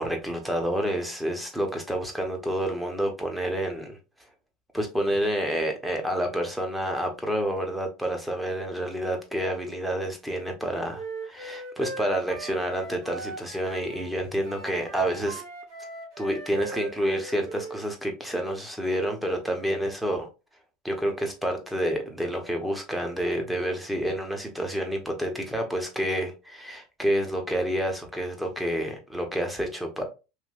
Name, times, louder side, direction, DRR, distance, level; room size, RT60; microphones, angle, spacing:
voice 1, 0.0-4.0 4.7-15.4 16.2-20.3 20.8-30.0, right 1 dB, 5° right, 0.9 m, -29 dB
Wind instrument woodwind instrument, 10.9-14.1 14.4-17.8, right 2 dB, 65° right, 1.2 m, -39 dB
3.2 x 2.6 x 2.4 m
supercardioid pair, 100°, 0 cm